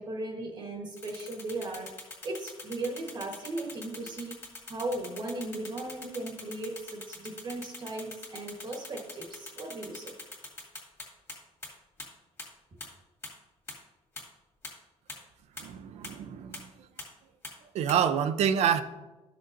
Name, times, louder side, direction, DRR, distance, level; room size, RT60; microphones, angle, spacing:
voice 1, 0.0-4.3 4.7-10.2, right 2 dB, 40° right, 2 dB, 1.2 m, -37 dB
sound 1, 1.0-11.3 11.6-11.7 12.0-12.1 12.4-12.5 12.8-12.9 13.2-13.3 13.7-13.8 14.2-14.3 14.6-14.7 15.1-15.2 15.6-15.7 16.0-16.1 16.5-16.6 17.0-17.1 17.4-17.5 17.9-18.0, left 2 dB, 20° left, 2.2 m, -42 dB
voice 2, 15.6-16.7 17.7-18.8, right 8 dB, 65° right, 8 dB, 0.5 m, -27 dB
12.0 x 6.6 x 2.6 m, 1.1 s
cardioid pair, 150°, 12 cm